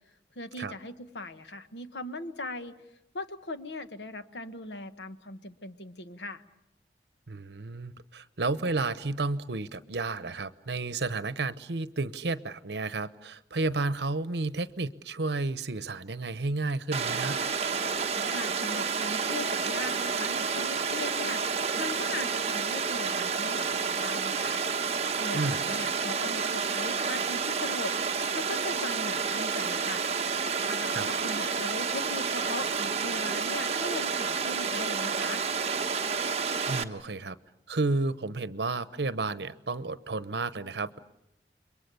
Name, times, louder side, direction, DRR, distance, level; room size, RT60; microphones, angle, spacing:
voice 1, 0.3-2.8 3.1-6.4 18.2-21.4 21.8-24.6 25.2-27.9 28.3-30.0 30.6-35.4, left 2 dB, 85° left, 10 dB, 1.3 m, -39 dB
voice 2, 7.3-17.4 25.3-25.6 30.9-31.1 36.7-37.4 37.7-41.0, right 3 dB, 80° right, 14 dB, 0.9 m, -31 dB
Water, 16.9-36.8, right 5 dB, 35° right, 1.1 m, -30 dB
30.0 x 22.5 x 6.9 m, 0.85 s
head